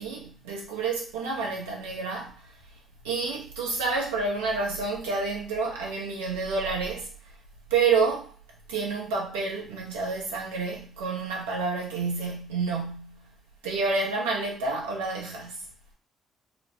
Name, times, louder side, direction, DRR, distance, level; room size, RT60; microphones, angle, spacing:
voice 1, 0.0-2.5 3.0-7.1 7.7-8.3 8.7-13.3 13.6-15.7, right 4 dB, 85° right, 0.7 m, -29 dB
3.0 x 2.1 x 2.7 m
hypercardioid pair, 45°, 0 cm